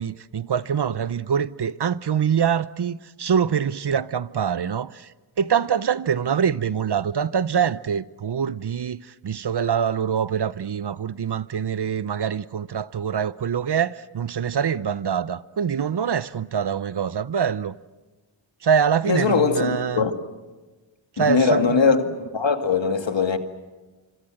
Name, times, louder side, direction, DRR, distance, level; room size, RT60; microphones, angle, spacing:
voice 1, 0.0-17.8 18.6-20.0 21.1-22.0, right 7 dB, 55° right, 0.8 m, -24 dB
voice 2, 19.1-20.1 21.2-23.4, left 5 dB, 65° left, 2.2 m, -21 dB
25.5 x 25.5 x 7.8 m
cardioid pair, 50°, 48 cm